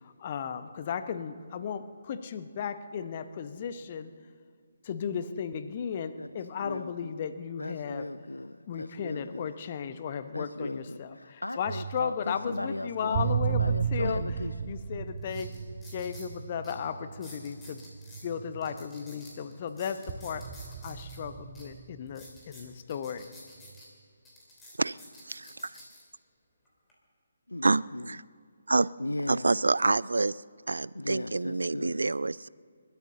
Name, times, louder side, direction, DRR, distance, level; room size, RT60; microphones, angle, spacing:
voice 1, 0.0-4.1 4.8-8.1 8.7-14.2 14.7-15.6 15.9-17.8 18.2-20.5 20.8-23.3, left 7 dB, 35° left, 11 dB, 0.9 m, -35 dB
voice 2, 6.2-7.1 7.6-9.5 10.3-14.7 27.5-28.2 29.0-29.6 30.9-32.1, left 1 dB, 80° left, 15 dB, 0.4 m, -37 dB
sound 1, 11.7-19.6 20.1-22.7 23.6-23.8, right 7 dB, 30° right, 1.0 m, -35 dB
sound 2, 14.5-14.6 15.2-16.3 16.6-16.7 17.1-18.2 18.6-21.2 21.5-21.6 22.1-23.9 24.2-26.0 26.6-26.9, left 1 dB, 10° left, 3.7 m, -51 dB
voice 3, 27.6-28.2 28.7-28.9 29.3-30.4 30.7-32.5, right 3 dB, 70° right, 21 dB, 0.3 m, -27 dB
29.0 x 13.0 x 3.8 m, 2.2 s
figure-of-eight pair, 145°, 0 cm